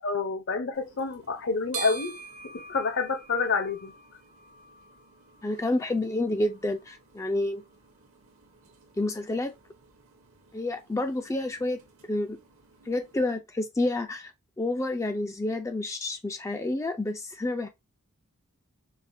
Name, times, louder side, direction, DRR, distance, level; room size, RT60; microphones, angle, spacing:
voice 1, 0.0-2.2 2.5-3.9, left 4 dB, 55° left, 0.7 m, -28 dB
sound 1, 0.7-13.3, right 5 dB, 65° right, 0.8 m, -47 dB
voice 2, 5.4-7.6 9.0-9.5 10.5-11.8 12.1-12.4 12.9-14.3 14.6-17.7, left 2 dB, 15° left, 0.3 m, -29 dB
4.8 x 2.1 x 2.6 m
head